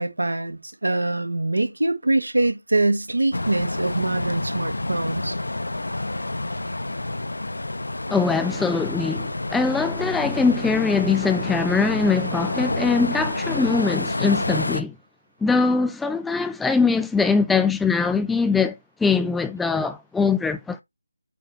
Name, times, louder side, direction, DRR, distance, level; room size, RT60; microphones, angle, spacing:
voice 1, 0.0-5.4, right 2 dB, 80° right, 1.4 m, -24 dB
sound 1, 3.3-14.8, left 2 dB, 80° left, 0.8 m, -28 dB
voice 2, 8.1-14.9 15.4-18.7 19.0-20.8, left 4 dB, 5° left, 0.3 m, -22 dB
8.7 x 3.3 x 4.0 m
figure-of-eight pair, 160°, 0 cm